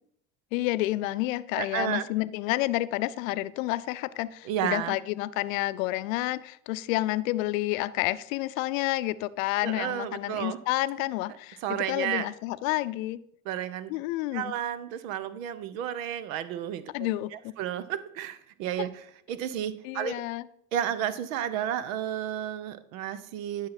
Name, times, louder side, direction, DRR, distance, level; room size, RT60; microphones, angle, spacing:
voice 1, 0.5-13.2 13.9-14.5 16.9-17.5 19.8-20.5, left 17 dB, 75° left, 16 dB, 0.5 m, -29 dB
voice 2, 1.6-2.1 4.4-5.0 9.6-10.6 11.6-12.3 13.4-13.9 14.3-16.9 17.3-20.2 20.7-23.7, right 10 dB, 80° right, 15 dB, 0.8 m, -32 dB
10.5 x 5.8 x 4.1 m, 0.68 s
hypercardioid pair, 85°, 40 cm